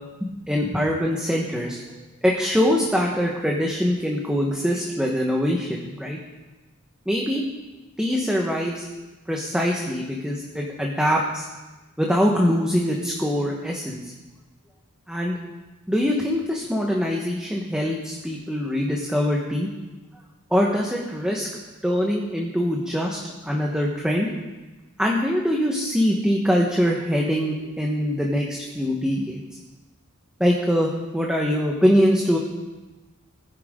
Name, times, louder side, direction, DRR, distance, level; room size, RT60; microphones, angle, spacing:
voice 1, 0.2-6.2 7.1-7.4 8.0-8.9 9.3-11.5 12.0-14.1 15.1-15.4 15.9-19.7 20.5-21.5 21.8-24.3 25.0-29.6 30.4-32.4, equal, 5° right, -1 dB, 1.3 m, -23 dB
20.5 x 10.5 x 3.8 m, 1.2 s
head